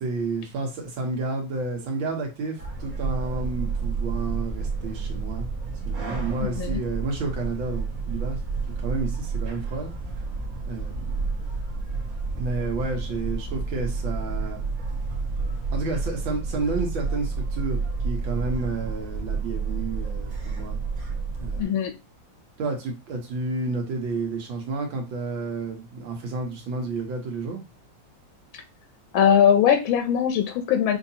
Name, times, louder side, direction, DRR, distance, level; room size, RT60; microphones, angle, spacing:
voice 1, 0.0-5.5 5.9-8.4 8.8-9.9 10.7-11.1 12.4-14.6 15.7-20.8 21.4-21.8 22.6-27.6, right 3 dB, 80° right, 1 dB, 2.0 m, -31 dB
sound 1, 2.6-21.6, right 4 dB, 50° right, 1.5 m, -30 dB
voice 2, 21.6-21.9 29.1-31.0, left 8 dB, 90° left, 7 dB, 1.4 m, -20 dB
5.8 x 2.9 x 2.8 m, 0.26 s
omnidirectional pair, 2.1 m